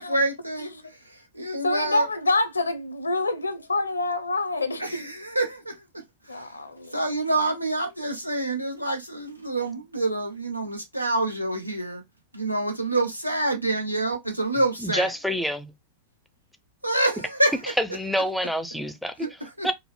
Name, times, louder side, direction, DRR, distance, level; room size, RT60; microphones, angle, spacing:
voice 1, 0.0-2.1 4.8-6.6 6.9-12.0 12.3-15.1 16.8-17.6 18.4-18.5 19.2-19.7, right 2 dB, 90° right, 0.7 m, -27 dB
voice 2, 1.6-5.0 6.3-6.9, left 2 dB, 80° left, 0.6 m, -26 dB
voice 3, 14.8-15.7 18.0-19.3 19.6-19.7, equal, ahead, 0.5 m, -27 dB
4.7 x 2.0 x 3.2 m
figure-of-eight pair, 90°, 0 cm